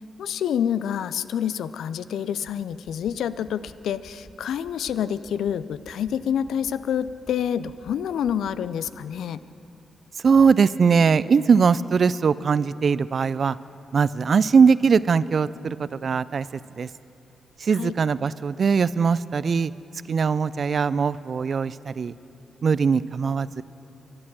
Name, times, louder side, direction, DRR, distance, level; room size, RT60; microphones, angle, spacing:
voice 1, 0.2-9.4 17.7-17.9, left 9 dB, 80° left, 15 dB, 0.3 m, -27 dB
sound 1, 2.5-2.6 2.8-3.1 3.4-3.7 4.0-4.3 4.6-4.9 5.2-5.5 5.8-6.1 6.4-6.7 7.0-7.3 7.6-7.9 8.2-8.5 8.8-8.9, right 1 dB, 10° right, 2.0 m, -49 dB
voice 2, 10.2-13.6 13.9-16.5 16.8-16.9 17.6-19.7 20.1-22.1 22.6-23.6, right 5 dB, 60° right, 18 dB, 0.3 m, -20 dB
12.0 x 10.5 x 7.5 m, 2.7 s
supercardioid pair, 45°, 0 cm